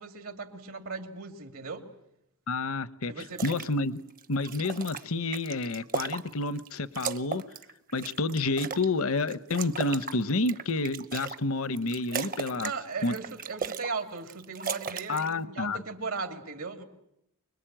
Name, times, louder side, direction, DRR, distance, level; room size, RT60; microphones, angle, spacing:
voice 1, 0.0-1.9 3.1-3.4 12.5-16.8, right 4 dB, 75° right, 2.7 m, -37 dB
voice 2, 2.5-3.1 3.4-4.0 4.3-7.4 7.9-12.7 13.0-13.1 15.1-15.8, left 3 dB, 70° left, 0.9 m, -29 dB
sound 1, 3.2-3.7 4.1-6.7 6.9-8.9 9.3-11.4 11.7-12.8 13.0-13.9 14.2-15.3, right 6 dB, 40° right, 0.9 m, -36 dB
25.0 x 22.5 x 9.0 m
head